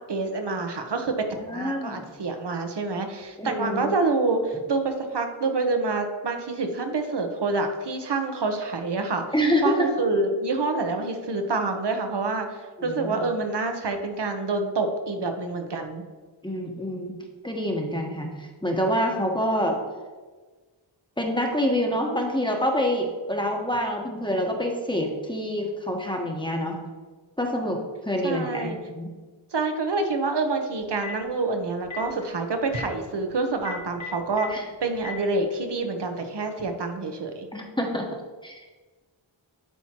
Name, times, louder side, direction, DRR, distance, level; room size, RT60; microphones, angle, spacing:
voice 1, 0.1-1.3 1.5-9.2 9.6-16.0 28.2-28.8 29.5-37.5, right 3 dB, 60° right, 5 dB, 1.1 m, -27 dB
voice 2, 1.5-2.1 3.4-3.9 9.3-9.9 12.8-13.3 16.4-17.2 17.4-19.8 21.2-26.8 27.4-27.8 28.0-29.1 34.5-34.7 37.5-38.1 38.4-38.6, equal, 10° left, 0 dB, 1.2 m, -26 dB
Telephone, 30.8-31.2 31.8-32.0 32.6-32.8 33.5-34.4 34.9-35.1, left 7 dB, 75° left, 1.7 m, -36 dB
11.5 x 4.3 x 3.0 m, 1.4 s
cardioid pair, 55°, 47 cm